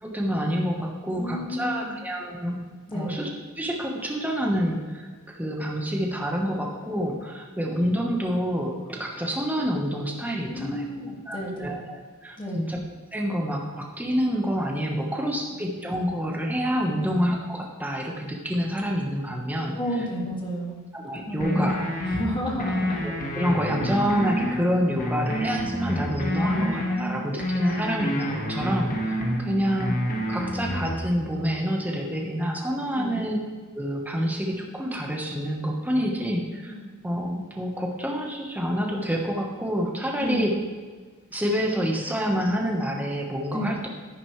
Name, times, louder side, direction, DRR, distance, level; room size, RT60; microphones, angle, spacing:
voice 1, 0.0-2.6 2.9-3.3 3.6-10.9 11.3-12.8 13.1-19.8 20.9-21.9 23.0-33.4 33.7-36.7 37.0-40.5 41.3-43.9, equal, 10° right, 0 dB, 1.1 m, -27 dB
voice 2, 1.2-2.0 2.9-3.2 10.5-11.8 12.4-12.6 16.9-17.1 19.7-20.8 21.2-21.7 22.0-23.0 24.8-24.9 26.4-27.3 29.2-29.7 33.0-33.2 36.1-36.2 36.7-36.8 40.2-40.5 43.5-43.8, equal, 25° left, -2 dB, 2.0 m, -32 dB
sound 1, 21.4-22.2 22.6-24.6 25.0-27.0 27.4-29.4 29.8-31.0, equal, 40° left, 1.5 m, -28 dB
10.0 x 9.8 x 3.2 m, 1.5 s
head